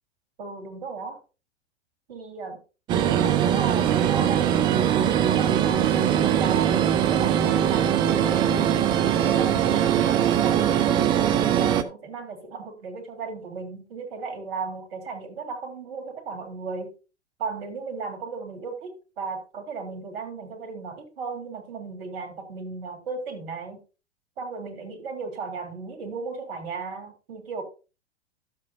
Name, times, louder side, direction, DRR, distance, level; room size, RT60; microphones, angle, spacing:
voice 1, 0.4-1.2 2.1-2.6 2.9-8.7 9.1-16.9 17.4-23.8 24.4-27.6, right 4 dB, 55° right, 5 dB, 3.2 m, -35 dB
sound 1, 2.9-11.8, right 10 dB, 15° right, 0.4 m, -21 dB
12.5 x 7.7 x 2.6 m, 0.32 s
figure-of-eight pair, 100°, 35 cm